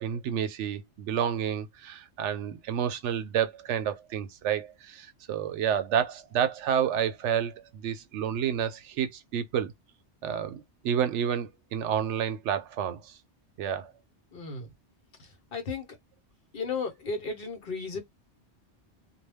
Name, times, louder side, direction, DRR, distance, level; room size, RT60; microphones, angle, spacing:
voice 1, 0.0-9.7 10.2-13.1 13.6-13.9, right 8 dB, 80° right, 0.9 m, -30 dB
voice 2, 14.3-14.7 15.2-15.9 16.5-18.0, left 4 dB, 55° left, 1.0 m, -34 dB
2.3 x 2.2 x 3.3 m
omnidirectional pair, 1.2 m